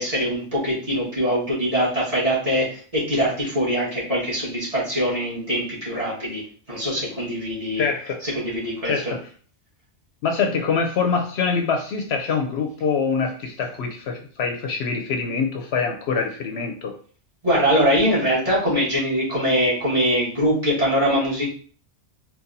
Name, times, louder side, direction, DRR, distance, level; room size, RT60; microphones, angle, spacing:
voice 1, 0.0-6.4 6.7-7.9 8.2-8.9 17.4-21.5, equal, 30° right, -8 dB, 1.8 m, -22 dB
voice 2, 7.8-8.2 8.8-9.2 10.2-16.9, left 5 dB, 70° left, 3 dB, 0.8 m, -24 dB
4.0 x 2.3 x 2.6 m, 0.43 s
omnidirectional pair, 1.2 m